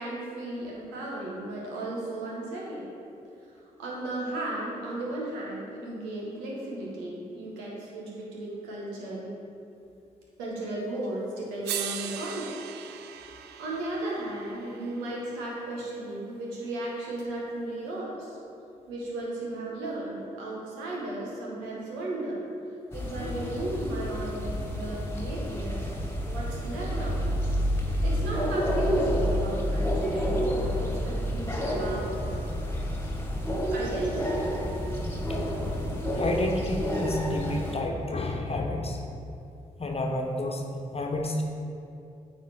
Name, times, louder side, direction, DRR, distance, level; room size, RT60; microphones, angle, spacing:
voice 1, 0.0-2.9 3.5-9.3 10.4-12.6 13.2-18.4 18.9-22.4 22.9-25.9 26.2-27.4 27.7-32.2 33.7-34.4, right 1 dB, 85° right, -4 dB, 1.4 m, -35 dB
sound 1, 11.0-11.1 11.6-15.8 17.2-17.3, right 10 dB, 70° right, 0.4 m, -39 dB
sound 2, 22.9-37.7, equal, 15° left, 1.6 m, -29 dB
voice 2, 35.3-39.0 39.8-41.4, left 1 dB, 35° left, 1 dB, 1.2 m, -31 dB
8.8 x 4.2 x 4.5 m, 2.6 s
hypercardioid pair, 40°, 18 cm